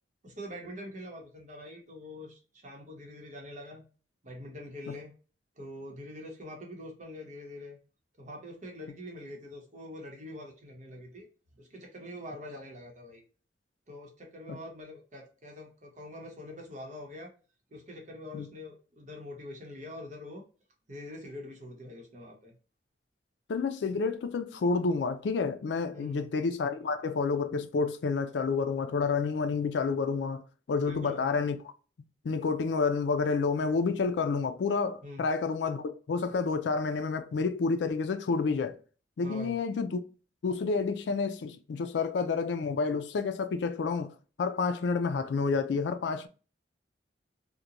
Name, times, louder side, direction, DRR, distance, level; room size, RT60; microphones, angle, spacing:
voice 1, 0.2-3.8 4.2-5.1 5.6-7.8 8.2-11.3 11.6-13.2 13.9-17.3 17.7-20.4 20.9-22.5 25.9-26.3 30.8-31.2 35.0-35.2 39.2-39.6, left 1 dB, 45° right, 0.9 m, -44 dB
voice 2, 23.5-31.7 32.2-38.8 39.2-40.0 40.4-44.1 44.4-46.3, left 4 dB, 70° left, 0.4 m, -29 dB
2.9 x 2.1 x 2.4 m
head